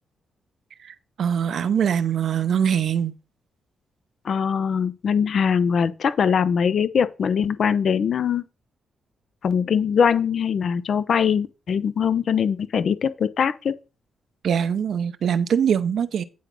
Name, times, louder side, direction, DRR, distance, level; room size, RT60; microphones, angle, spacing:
voice 1, 0.8-3.1 14.4-16.2, right 8 dB, 70° right, 0.7 m, -23 dB
voice 2, 4.2-8.4 9.4-13.7, left 7 dB, 65° left, 0.6 m, -22 dB
9.4 x 3.9 x 6.0 m
cardioid pair, 80°, 0 cm